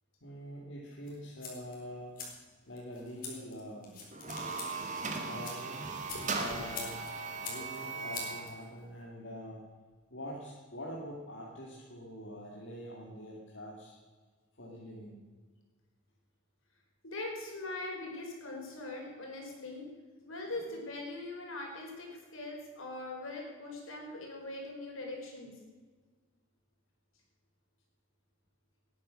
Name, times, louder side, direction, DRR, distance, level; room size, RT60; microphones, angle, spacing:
voice 1, 0.2-2.2 2.7-4.0 5.0-5.9 6.3-6.9 7.5-9.6 10.1-13.9 14.5-15.2, equal, 60° left, -3 dB, 2.5 m, -45 dB
sound 1, 1.0-9.0, left 4 dB, 40° left, 4.0 m, -47 dB
sound 2, 4.1-8.5, right 4 dB, 35° right, 2.0 m, -38 dB
voice 2, 17.0-19.9 20.2-25.5, left 2 dB, 75° left, 0 dB, 5.0 m, -41 dB
19.0 x 9.9 x 6.5 m, 1.4 s
head